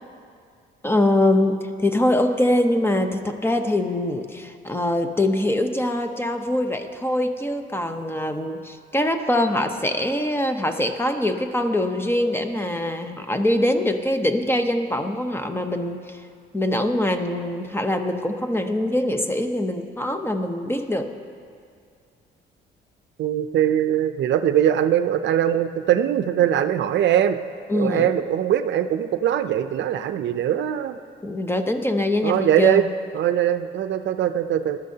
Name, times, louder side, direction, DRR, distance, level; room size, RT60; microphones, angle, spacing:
voice 1, 0.8-16.2 16.5-21.1 27.7-28.1 31.2-32.9, left 1 dB, 10° left, 7 dB, 0.8 m, -23 dB
voice 2, 23.2-27.4 27.7-31.0 32.2-32.9 33.1-34.8, right 10 dB, 65° right, 9 dB, 0.5 m, -21 dB
19.5 x 12.5 x 2.8 m, 2.2 s
cardioid pair, 90°, 20 cm